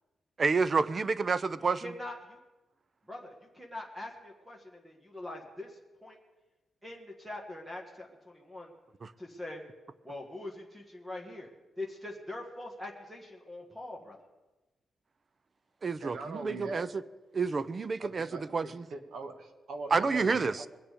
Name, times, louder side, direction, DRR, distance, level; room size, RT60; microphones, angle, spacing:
voice 1, 0.4-1.9 9.0-9.1 15.8-16.9 17.3-18.8 19.9-20.6, right 4 dB, 30° right, 17 dB, 0.4 m, -29 dB
voice 2, 1.7-2.4 3.1-6.2 6.8-8.7 9.2-9.6 10.0-11.5 11.8-14.2, left 2 dB, 10° right, 1 dB, 1.5 m, -43 dB
voice 3, 16.0-16.9 18.0-20.7, right 3 dB, 70° right, 6 dB, 1.5 m, -41 dB
22.0 x 8.7 x 5.0 m, 1.1 s
wide cardioid pair, 170°, 0 cm